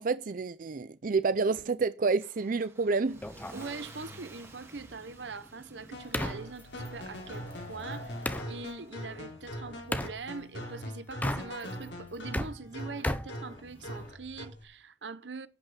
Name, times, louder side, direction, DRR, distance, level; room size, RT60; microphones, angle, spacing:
voice 1, 0.0-3.2, right 4 dB, 50° right, 0.5 m, -29 dB
Car / Engine starting / Accelerating revving vroom, 2.2-9.3, right 1 dB, 15° right, 2.5 m, -53 dB
sound 1, 3.2-8.5 9.9-10.2 11.1-11.8 12.1-14.1, left 1 dB, 10° left, 0.9 m, -37 dB
voice 2, 3.5-8.2 8.5-15.5, right 4 dB, 85° right, 1.0 m, -42 dB
sound 2, 5.9-14.6, equal, 80° left, 3.9 m, -42 dB
11.5 x 5.7 x 8.8 m
head